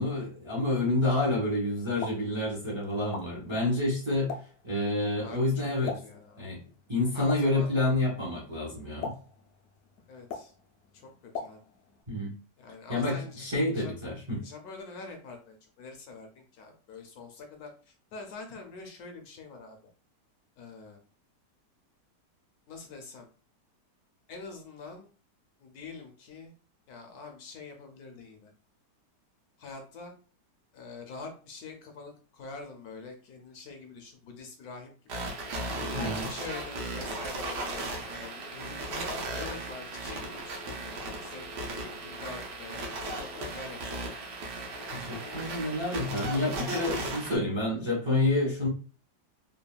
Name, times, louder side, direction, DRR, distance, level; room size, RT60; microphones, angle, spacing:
voice 1, 0.0-4.3 4.6-6.0 6.4-6.6 6.9-9.2 12.1-12.4 12.9-14.4 35.9-36.2 44.9-48.7, left 2 dB, 40° right, -3 dB, 0.4 m, -28 dB
Explosion, 1.8-12.0, left 5 dB, 85° left, 0.6 m, -44 dB
voice 2, 5.2-5.7 6.0-6.4 7.1-7.7 10.1-10.5 10.9-11.6 12.6-13.4 13.7-13.9 14.4-19.8 20.6-21.0 22.7-23.3 24.3-25.1 25.6-26.5 26.9-28.5 29.6-30.1 30.7-35.2 35.9-41.5 42.0-44.2, left 4 dB, 70° left, 4 dB, 1.0 m, -45 dB
sound 1, 35.1-47.4, right 2 dB, 75° right, 1.3 m, -36 dB
3.3 x 2.2 x 2.2 m, 0.39 s
omnidirectional pair, 1.9 m